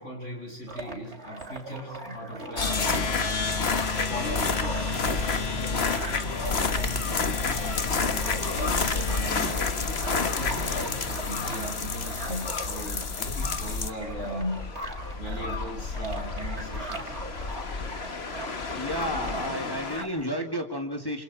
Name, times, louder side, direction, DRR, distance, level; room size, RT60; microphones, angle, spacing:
voice 1, 0.0-2.8 4.1-9.7 10.1-14.6 15.2-17.2, equal, 85° left, -1 dB, 8.2 m, -38 dB
sound 1, 0.7-20.3, right 2 dB, 65° right, 3.7 m, -40 dB
sound 2, 2.6-20.0, left 4 dB, 60° left, 1.6 m, -29 dB
voice 2, 18.5-21.2, equal, 20° left, 3 dB, 2.1 m, -32 dB
28.5 x 27.0 x 4.3 m, 0.80 s
omnidirectional pair, 1.2 m